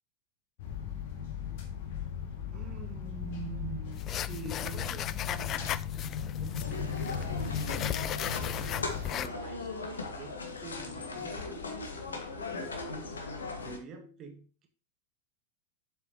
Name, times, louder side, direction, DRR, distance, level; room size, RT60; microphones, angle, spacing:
sound 1, 0.6-9.2, left 7 dB, 50° left, 1.8 m, -37 dB
voice 1, 2.5-5.8 6.3-11.7 12.9-13.3 13.6-14.7, right 5 dB, 30° right, 4 dB, 1.4 m, -46 dB
sound 2, 3.9-9.3, left 11 dB, 30° left, 0.3 m, -37 dB
sound 3, 6.6-13.8, left 3 dB, 70° left, 1.5 m, -38 dB
7.7 x 7.3 x 3.0 m, 0.39 s
figure-of-eight pair, 90°, 0 cm